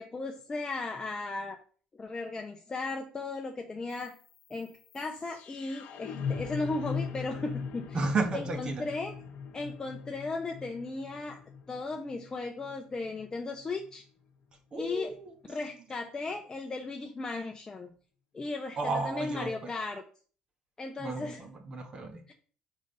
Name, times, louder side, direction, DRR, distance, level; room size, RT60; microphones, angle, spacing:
voice 1, 0.0-1.6 1.9-4.1 4.5-8.0 8.3-9.1 9.5-11.4 11.7-14.0 14.8-15.1 15.5-17.9 18.3-18.8 19.0-20.0 20.8-21.4 22.3-22.4, left 3 dB, 25° left, 3 dB, 0.8 m, -36 dB
sound 1, 3.9-13.9, left 6 dB, 65° left, 1.0 m, -40 dB
voice 2, 7.9-8.8 14.7-15.6 18.8-19.7 21.0-22.2, right 3 dB, 35° right, 5 dB, 1.3 m, -33 dB
5.2 x 3.9 x 5.3 m, 0.42 s
cardioid pair, 105°, 3 cm